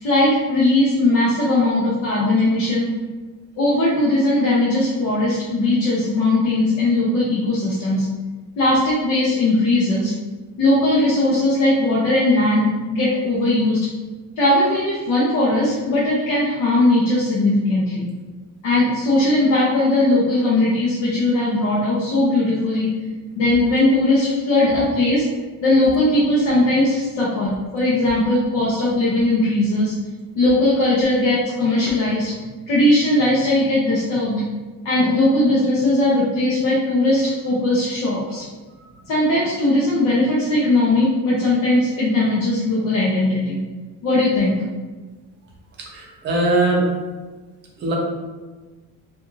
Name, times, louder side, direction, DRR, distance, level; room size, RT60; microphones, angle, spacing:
voice 1, 0.0-2.9 3.6-8.1 8.6-10.1 10.6-13.8 14.4-18.1 18.6-22.9 23.4-25.2 25.6-29.9 30.4-32.3 32.7-34.4 34.8-38.5 39.1-43.6 44.0-44.6, left 1 dB, 60° left, -6 dB, 0.7 m, -19 dB
voice 2, 45.9-47.0 47.8-47.9, right 2 dB, 35° right, -2 dB, 0.5 m, -20 dB
2.4 x 2.4 x 3.0 m, 1.3 s
cardioid pair, 180°, 33 cm